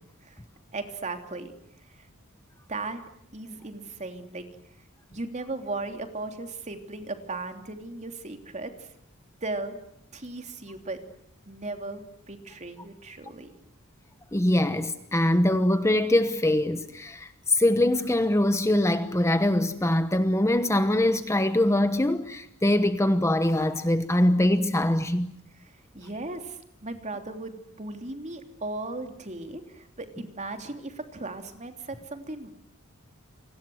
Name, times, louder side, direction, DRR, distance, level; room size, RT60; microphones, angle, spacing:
voice 1, 0.7-1.5 1.9-2.1 2.7-3.0 3.3-4.4 5.1-8.9 9.4-9.8 10.1-11.0 11.5-13.5 25.6-32.5, right 2 dB, 35° right, 3.2 m, -37 dB
voice 2, 14.3-25.3, left 1 dB, 15° left, 1.1 m, -23 dB
29.5 x 24.5 x 7.9 m
head